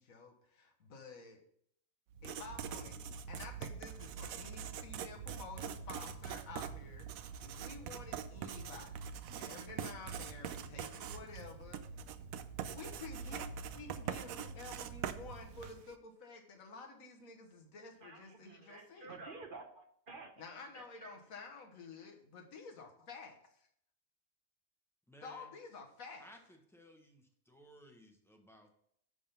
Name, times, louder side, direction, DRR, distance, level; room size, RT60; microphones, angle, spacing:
voice 1, 0.0-1.4 2.2-3.0 3.3-12.2 12.6-19.2 20.4-23.7 25.2-26.3, left 4 dB, 70° left, 2 dB, 1.7 m, -51 dB
Writing, 2.1-15.9, right 7 dB, 75° right, 1.0 m, -44 dB
voice 2, 18.0-20.3 20.7-21.2, right 3 dB, 45° right, 5 dB, 0.8 m, -51 dB
voice 3, 25.1-25.5 26.2-28.7, equal, ahead, 3 dB, 0.9 m, -59 dB
10.0 x 3.7 x 5.7 m, 0.68 s
omnidirectional pair, 1.5 m